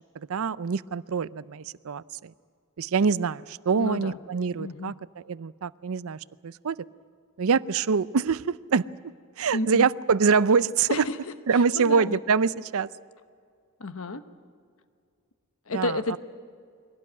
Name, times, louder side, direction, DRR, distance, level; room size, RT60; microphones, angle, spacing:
voice 1, 0.2-2.3 2.8-4.9 5.2-6.8 7.4-8.8 9.4-11.1 11.5-12.9 15.7-16.2, right 5 dB, 70° right, 17 dB, 0.5 m, -25 dB
voice 2, 3.8-4.2 4.6-4.9 9.5-9.9 10.9-11.2 11.8-12.2 13.8-14.2 15.7-16.2, left 2 dB, 70° left, 10 dB, 1.1 m, -30 dB
23.0 x 17.5 x 9.4 m, 2.3 s
head